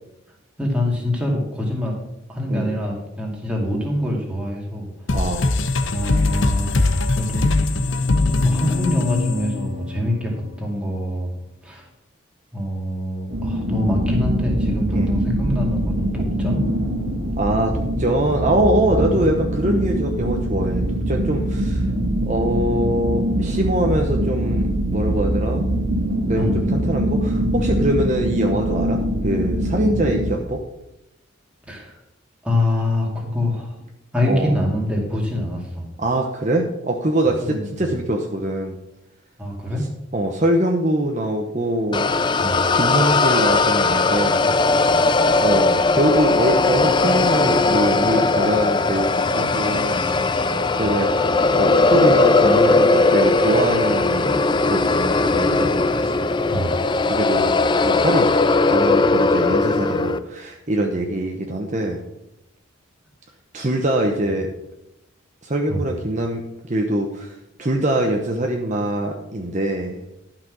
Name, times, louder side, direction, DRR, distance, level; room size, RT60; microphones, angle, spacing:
voice 1, 0.6-1.9 2.3-4.9 5.2-5.3 5.9-7.4 8.3-10.3 10.6-11.3 11.6-11.9 12.5-16.6 18.9-19.1 26.3-26.7 31.7-32.0 32.4-33.8 34.1-35.9 37.4-37.9 39.4-39.8 42.4-42.7 44.8-45.0 56.5-56.8 65.7-65.9, left 1 dB, 5° right, -2 dB, 2.3 m, -25 dB
sound 1, 5.1-10.4, left 2 dB, 70° left, 0.9 m, -21 dB
voice 2, 5.1-5.5 14.9-15.1 17.4-21.9 22.3-25.7 26.3-30.6 34.3-34.5 36.0-38.8 40.1-42.1 42.7-44.5 45.4-50.0 50.8-51.1 51.6-55.7 56.0-56.1 57.1-57.5 57.8-58.3 58.7-62.0 63.5-64.5 65.4-70.0, right 1 dB, 35° right, 2 dB, 0.9 m, -23 dB
sound 2, 13.3-30.4, right 1 dB, 85° right, 1.8 m, -23 dB
sound 3, 41.9-60.2, left 3 dB, 25° left, 0.4 m, -18 dB
12.0 x 5.9 x 6.1 m, 0.89 s
head